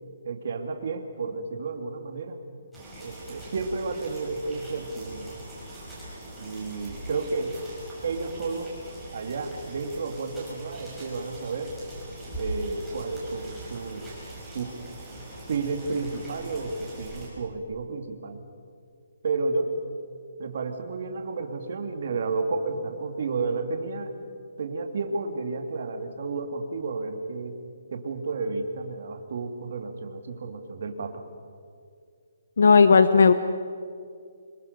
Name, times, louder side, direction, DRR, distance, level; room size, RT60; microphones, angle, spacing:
voice 1, 0.2-2.4 3.0-5.4 6.4-7.6 8.0-8.7 9.1-11.7 12.4-14.1 14.5-14.8 15.5-18.4 19.2-19.7 20.4-24.1 24.6-27.6 27.9-31.2, right 3 dB, 45° right, 5 dB, 2.4 m, -31 dB
sound 1, 2.7-17.3, right 1 dB, ahead, 5.8 m, -41 dB
voice 2, 32.6-33.3, left 5 dB, 65° left, 11 dB, 0.9 m, -15 dB
25.0 x 23.0 x 6.7 m, 2.3 s
hypercardioid pair, 175°, 0 cm